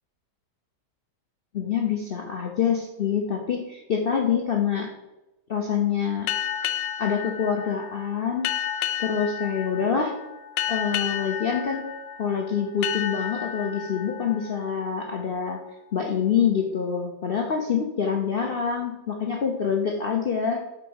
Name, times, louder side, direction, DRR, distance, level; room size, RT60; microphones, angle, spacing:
voice 1, 1.5-4.9 5.5-6.3 7.0-8.5 9.0-10.1 10.7-11.9 12.2-15.6 15.9-20.6, left 7 dB, 65° left, 1 dB, 0.5 m, -26 dB
sound 1, 6.3-15.6, left 10 dB, 85° left, 1.2 m, -32 dB
5.7 x 4.3 x 5.4 m, 0.99 s
omnidirectional pair, 1.9 m